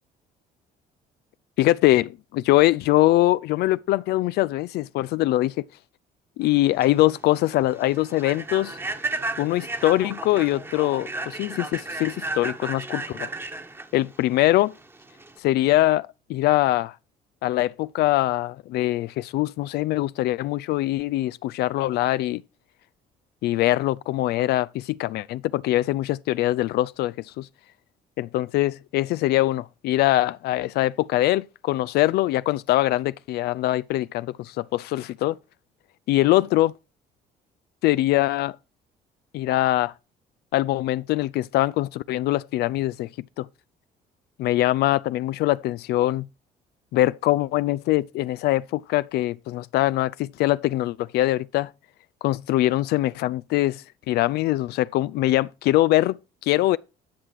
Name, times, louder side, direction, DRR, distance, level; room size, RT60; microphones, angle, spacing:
voice 1, 1.6-5.6 6.4-8.8 9.4-13.3 13.9-14.7 15.4-16.9 17.4-22.4 23.4-27.5 28.2-35.4 36.1-36.7 37.8-38.6 39.3-39.9 40.5-43.1 43.4-43.5 44.4-46.3 46.9-51.7 52.2-56.8, left 16 dB, 75° left, 0.4 m, -23 dB
Human voice / Train, 6.5-15.4, right 2 dB, 15° right, 1.2 m, -34 dB
10.0 x 5.9 x 4.7 m
cardioid pair, 110°, 17 cm